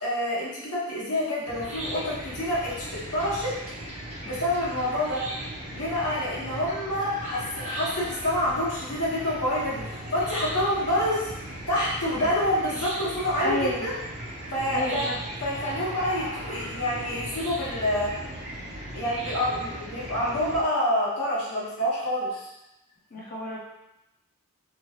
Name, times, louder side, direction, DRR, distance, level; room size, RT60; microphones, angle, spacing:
voice 1, 0.0-3.5 4.2-5.2 5.7-11.3 11.7-13.9 14.5-15.1 15.4-18.1 18.9-22.5, left 1 dB, 90° left, -7 dB, 1.0 m, -27 dB
Chicken rooster / Cricket, 1.5-20.6, right 1 dB, 30° right, 0.5 m, -37 dB
voice 2, 13.4-13.9 14.7-15.2 23.1-23.6, left 1 dB, 40° left, -4 dB, 0.4 m, -30 dB
3.0 x 2.3 x 2.8 m, 0.91 s
head